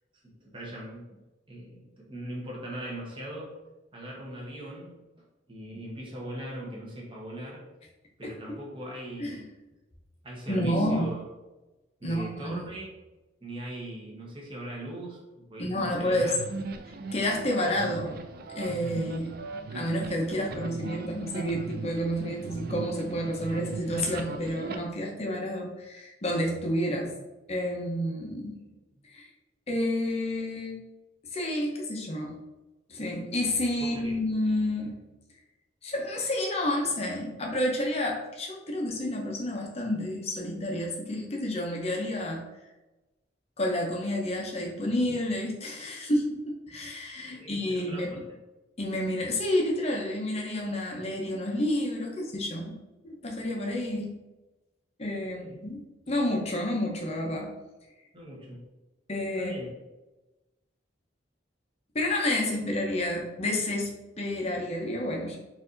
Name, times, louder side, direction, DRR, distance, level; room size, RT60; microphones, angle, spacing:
voice 1, 0.2-1.2 1.5-3.6 3.9-5.0 5.5-7.6 8.2-9.5 10.2-11.2 12.0-12.9 13.4-16.4 19.7-19.8 28.6-28.8 33.8-34.2 47.3-48.2 55.2-55.6 58.1-58.6 59.4-59.7, right 1 dB, 30° right, -4 dB, 1.3 m, -40 dB
voice 2, 10.5-11.1 12.0-12.7 15.6-16.3 17.1-18.2 18.5-19.3 19.7-27.1 27.5-28.6 29.1-29.3 29.7-30.8 31.3-32.4 32.9-35.0 35.8-42.4 43.6-48.1 48.8-52.8 53.0-54.2 55.0-57.5 59.1-59.5 61.9-65.4, left 1 dB, 35° left, 0 dB, 0.8 m, -30 dB
sound 1, 15.8-24.8, right 3 dB, 50° right, 0.4 m, -39 dB
4.4 x 2.7 x 3.9 m, 1.1 s
head